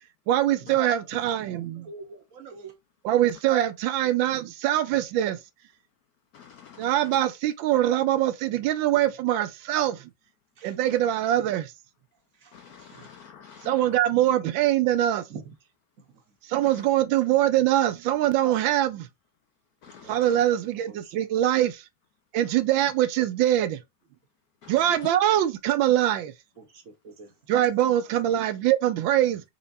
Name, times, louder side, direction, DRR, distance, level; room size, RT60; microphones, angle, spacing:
voice 1, 0.3-1.9 3.0-5.4 6.8-10.1 10.6-11.7 13.6-15.2 16.5-19.1 20.1-21.8 22.3-23.8 24.7-26.3 27.5-29.4, right 12 dB, 75° right, 1.3 m, -23 dB
voice 2, 1.2-2.7 10.6-10.7 12.4-12.5 12.9-13.1 15.3-15.5 20.0-20.6 20.9-21.1 26.6-27.3 28.1-28.2, right 4 dB, 50° right, 1.1 m, -45 dB
voice 3, 6.3-6.9 12.5-13.7 19.8-20.2 24.6-24.7, left 7 dB, 85° left, 0.8 m, -48 dB
4.3 x 3.9 x 2.5 m
omnidirectional pair, 2.2 m